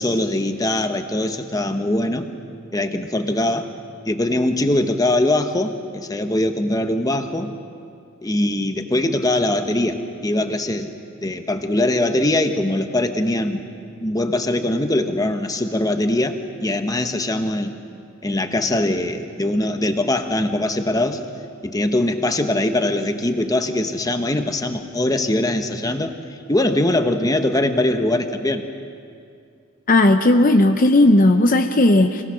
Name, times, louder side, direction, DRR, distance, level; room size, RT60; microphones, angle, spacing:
voice 1, 0.0-2.3 2.7-3.7 4.1-7.5 8.2-10.9 11.2-13.6 14.0-17.7 18.2-21.2 21.6-26.2 26.5-28.6, left 1 dB, 15° left, 6 dB, 1.0 m, -22 dB
voice 2, 29.9-32.2, left 1 dB, 40° left, 6 dB, 0.7 m, -15 dB
26.0 x 18.5 x 6.3 m, 2.3 s
head